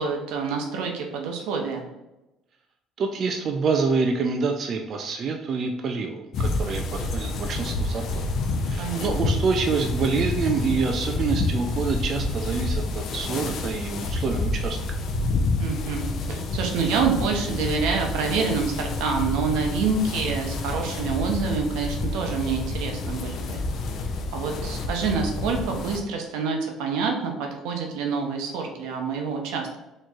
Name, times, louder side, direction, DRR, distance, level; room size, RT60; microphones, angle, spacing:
voice 1, 0.0-1.9 8.8-9.4 15.6-23.6 24.3-29.8, right 5 dB, 90° right, 2 dB, 0.7 m, -27 dB
voice 2, 3.0-8.2 8.7-14.8, right 4 dB, 50° right, 3 dB, 0.4 m, -27 dB
sound 1, 6.3-26.0, left 2 dB, 60° left, 0.5 m, -28 dB
4.2 x 3.0 x 2.4 m, 0.96 s
cardioid pair, 110°, 0 cm